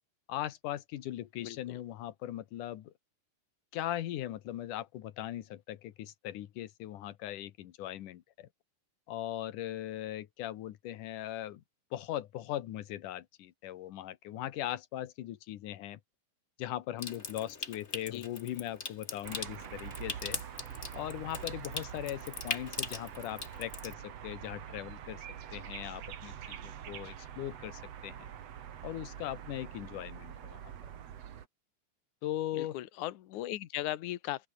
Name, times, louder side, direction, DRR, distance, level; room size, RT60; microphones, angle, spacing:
voice 1, 0.3-2.9 3.7-8.5 9.1-11.6 11.9-16.0 16.6-20.4 20.7-25.2 25.5-28.3 28.8-30.6 32.2-32.8, left 13 dB, 70° left, 2.0 m, -39 dB
voice 2, 1.4-1.8 18.1-18.2 32.5-34.5, left 14 dB, 85° left, 1.7 m, -38 dB
Water tap faucet / Sink (filling or washing) / Trickle dribble, 17.0-23.9, left 4 dB, 45° left, 0.8 m, -41 dB
sound 1, 19.2-31.5, right 9 dB, 60° right, 1.7 m, -45 dB
open air
omnidirectional pair, 5.3 m